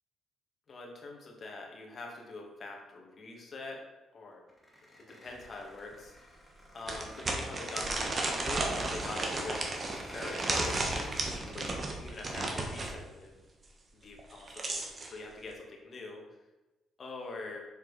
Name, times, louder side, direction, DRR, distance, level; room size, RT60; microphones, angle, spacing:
voice 1, 0.7-3.8 4.1-4.4 4.9-6.5 6.7-13.4 13.9-16.2 17.0-17.6, left 2 dB, 45° left, 0 dB, 2.0 m, -44 dB
Squeak, 4.5-11.7, equal, 10° left, 2.5 m, -51 dB
sound 1, 5.4-5.5 5.9-6.0 6.9-13.0 14.2-15.1, right 2 dB, 35° right, 1.4 m, -34 dB
6.9 x 4.7 x 4.9 m, 1.1 s
cardioid pair, 90°, 0 cm